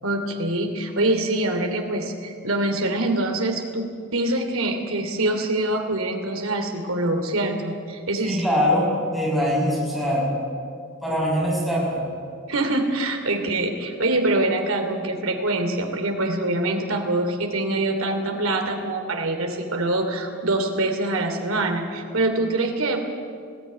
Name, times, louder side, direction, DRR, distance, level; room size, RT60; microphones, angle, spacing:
voice 1, 0.0-8.4 12.5-23.0, right 2 dB, 80° right, 4 dB, 2.9 m, -24 dB
voice 2, 8.2-10.3 11.0-12.0, equal, ahead, -6 dB, 7.0 m, -22 dB
20.5 x 16.0 x 9.7 m, 2.2 s
head